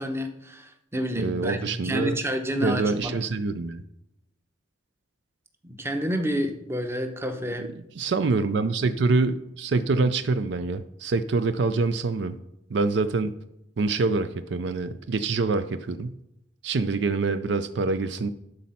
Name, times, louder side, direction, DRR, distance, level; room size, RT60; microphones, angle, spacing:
voice 1, 0.0-3.1 5.6-7.7, equal, 15° right, 6 dB, 0.8 m, -29 dB
voice 2, 1.2-2.2 2.6-3.8 7.6-7.7 8.0-12.3 12.7-13.3 13.8-16.1 16.6-18.3, right 3 dB, 60° right, 11 dB, 0.4 m, -25 dB
11.5 x 4.2 x 5.7 m, 0.84 s
head